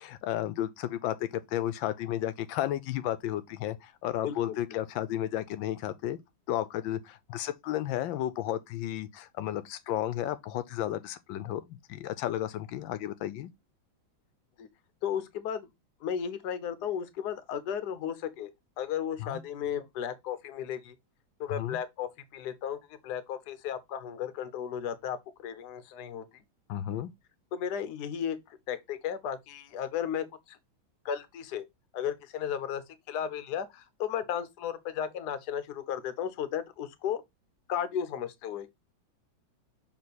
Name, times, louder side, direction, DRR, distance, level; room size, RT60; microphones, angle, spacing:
voice 1, 0.0-6.2 6.5-13.5 19.2-19.4 21.5-21.8 26.7-27.1, left 12 dB, 85° left, 1.4 m, -33 dB
voice 2, 4.2-4.8 14.6-14.7 15.0-15.7 16.0-18.5 18.8-21.0 21.4-26.2 27.5-30.6 31.0-31.6 31.9-37.2 37.7-38.7, left 8 dB, 65° left, 1.3 m, -34 dB
6.6 x 3.7 x 4.1 m
omnidirectional pair, 2.1 m